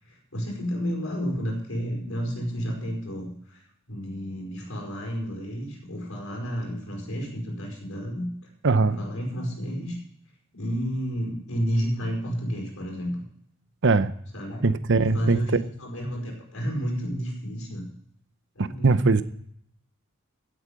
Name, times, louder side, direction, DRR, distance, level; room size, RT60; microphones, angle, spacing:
voice 1, 0.0-8.3 8.8-10.0 10.5-13.2 14.3-14.6 15.0-17.9 18.5-19.0, equal, 80° left, 1 dB, 5.0 m, -31 dB
voice 2, 8.6-9.0 13.8-14.1 14.6-15.4 18.6-19.2, right 3 dB, 60° right, 13 dB, 0.7 m, -21 dB
16.0 x 8.4 x 5.0 m, 0.67 s
head